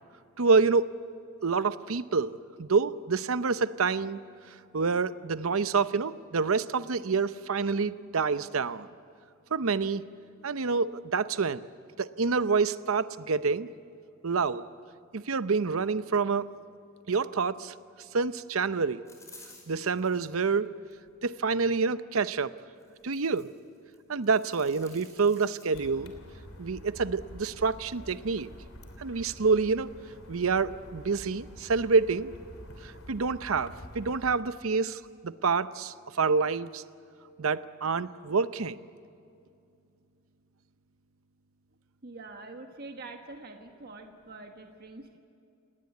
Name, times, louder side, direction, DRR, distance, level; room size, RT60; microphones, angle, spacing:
voice 1, 0.4-0.9 1.4-4.2 4.7-8.9 9.5-10.0 10.4-11.6 12.0-13.7 14.2-14.7 15.1-16.5 17.1-17.7 18.1-19.0 19.7-20.7 21.2-22.5 23.0-23.5 24.1-26.1 26.6-28.5 29.0-29.9 30.3-32.3 32.8-36.8 37.4-38.8, right 4 dB, 80° right, 14 dB, 0.7 m, -27 dB
sound 1, 19.1-20.3 20.9-21.5 22.8-23.6 23.9-25.6, left 2 dB, 15° left, 5.2 m, -54 dB
sound 2, 25.7-34.4, equal, 85° left, 3.1 m, -48 dB
voice 2, 42.0-45.2, right 3 dB, 50° right, 4 dB, 1.4 m, -45 dB
29.0 x 18.5 x 8.4 m, 2.5 s
head